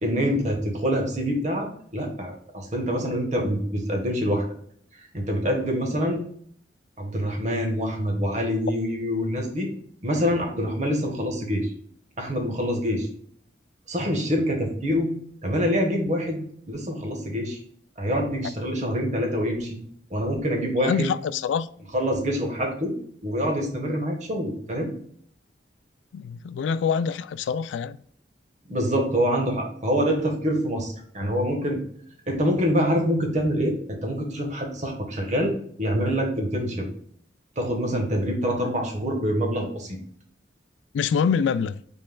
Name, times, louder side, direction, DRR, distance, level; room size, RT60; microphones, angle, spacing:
voice 1, 0.0-4.4 5.1-6.2 7.0-9.7 10.0-11.7 12.2-13.1 13.9-15.2 15.4-17.6 18.0-19.8 20.1-21.1 21.9-22.9 23.2-24.9 28.7-31.8 32.3-33.7 34.0-36.9 37.6-40.0, equal, 40° right, 1.3 m, -25 dB
voice 2, 20.8-21.7 26.1-28.0 40.9-41.8, left 6 dB, 90° left, 0.3 m, -25 dB
5.4 x 4.3 x 2.2 m
head